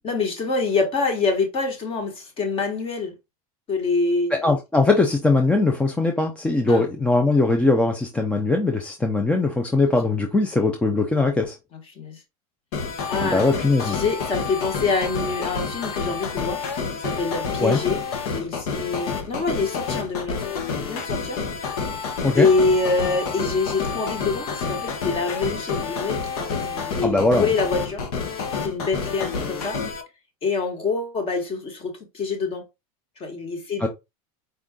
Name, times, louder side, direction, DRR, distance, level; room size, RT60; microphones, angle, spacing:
voice 1, 0.0-3.1 3.7-4.5 6.7-6.8 11.7-12.2 13.1-13.5 13.8-16.6 17.0-18.0 18.3-21.4 22.3-28.0 28.6-29.8 30.4-32.6 33.2-33.9, left 4 dB, 30° left, 1.2 m, -25 dB
voice 2, 4.3-11.6 13.2-14.0 17.6-17.8 22.2-22.5 27.0-27.5 33.8-33.9, left 3 dB, 5° left, 0.4 m, -20 dB
sound 1, 12.7-30.0, left 5 dB, 75° left, 1.2 m, -29 dB
4.5 x 2.4 x 3.6 m
supercardioid pair, 145°, 19 cm